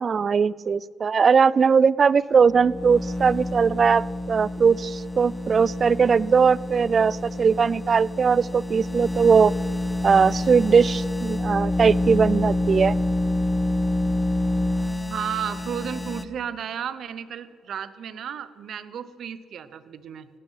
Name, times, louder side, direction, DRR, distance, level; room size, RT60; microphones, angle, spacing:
voice 1, 0.0-9.5 10.0-13.0, right 6 dB, 45° right, 23 dB, 0.3 m, -20 dB
sound 1, 2.4-16.2, left 1 dB, 20° left, 0.7 m, -27 dB
voice 2, 15.1-20.3, right 8 dB, 65° right, 15 dB, 0.8 m, -33 dB
16.5 x 12.0 x 5.8 m, 2.4 s
cardioid pair, 90°, 0 cm